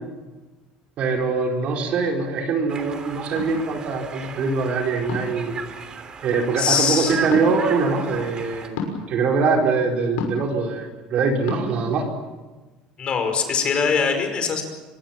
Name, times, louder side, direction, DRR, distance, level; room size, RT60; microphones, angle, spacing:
voice 1, 1.0-5.6 6.2-12.1, right 4 dB, 50° right, 2 dB, 4.7 m, -23 dB
Conversation, 2.7-8.7, right 5 dB, 30° right, 3.2 m, -36 dB
sound 1, 3.3-3.5 5.1-5.4 7.3-7.5 8.7-9.0 10.2-10.5 11.5-11.6, left 5 dB, 85° left, 6.1 m, -29 dB
voice 2, 6.6-7.2 13.0-14.6, left 6 dB, 35° left, 6 dB, 5.1 m, -22 dB
25.0 x 22.0 x 7.4 m, 1.2 s
cardioid pair, 125°, 3 cm